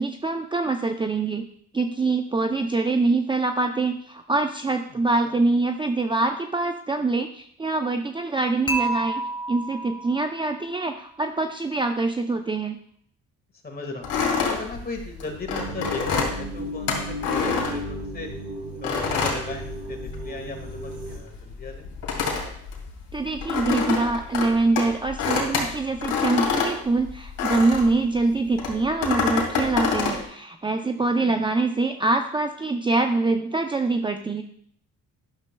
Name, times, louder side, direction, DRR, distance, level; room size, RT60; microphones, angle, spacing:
voice 1, 0.0-1.4 1.7-9.2 9.5-12.8 23.1-34.4, right 3 dB, 15° right, 5 dB, 0.5 m, -24 dB
Dishes pots and pans / Chink clink, 8.7-10.8, right 2 dB, 15° left, 1.6 m, -30 dB
voice 2, 13.6-18.3 18.7-21.9 31.2-31.4, left 3 dB, 30° left, 4 dB, 1.7 m, -37 dB
sound 1, 14.0-18.3 18.8-20.3 20.6-28.0 28.6-30.2, left 5 dB, 85° left, 2.3 m, -27 dB
sound 2, 15.5-21.2, right 1 dB, 80° right, 2.5 m, -35 dB
11.5 x 6.6 x 2.2 m, 0.63 s
cardioid pair, 90°, 30 cm